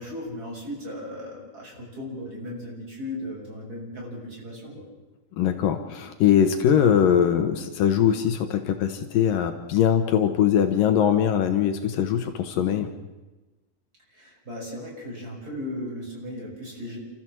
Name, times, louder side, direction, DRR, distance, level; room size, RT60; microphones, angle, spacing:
voice 1, 0.0-4.9 14.1-17.0, left 1 dB, 25° right, -2 dB, 7.3 m, -36 dB
voice 2, 5.4-12.9, left 9 dB, 80° left, 7 dB, 2.9 m, -21 dB
30.0 x 14.5 x 7.6 m, 1.1 s
omnidirectional pair, 4.0 m